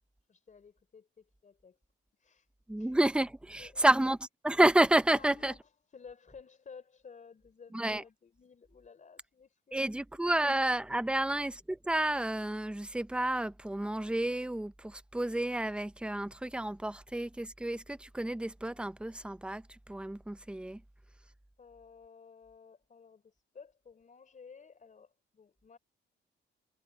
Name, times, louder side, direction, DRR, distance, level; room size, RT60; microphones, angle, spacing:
voice 1, 0.3-1.8 2.2-2.5 2.8-3.0 3.4-4.0 5.1-10.1 10.4-10.6 11.1-11.4 21.6-25.8, left 5 dB, 40° left, 3.8 m, -55 dB
voice 2, 2.7-4.2 4.4-5.5 7.7-8.0 9.7-20.8, right 1 dB, 5° right, 0.7 m, -30 dB
cardioid pair, 90°, 20 cm